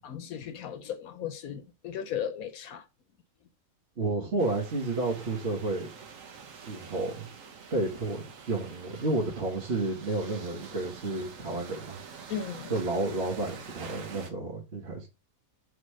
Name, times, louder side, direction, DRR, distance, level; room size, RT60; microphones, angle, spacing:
voice 1, 0.0-2.8 12.3-12.7, left 8 dB, 85° left, 1.2 m, -36 dB
voice 2, 4.0-5.9 6.7-7.3 7.7-12.0 12.7-15.1, right 2 dB, 50° right, 1.8 m, -31 dB
sound 1, 4.4-14.3, right 6 dB, 70° right, 1.3 m, -46 dB
5.6 x 3.3 x 5.4 m
omnidirectional pair, 1.5 m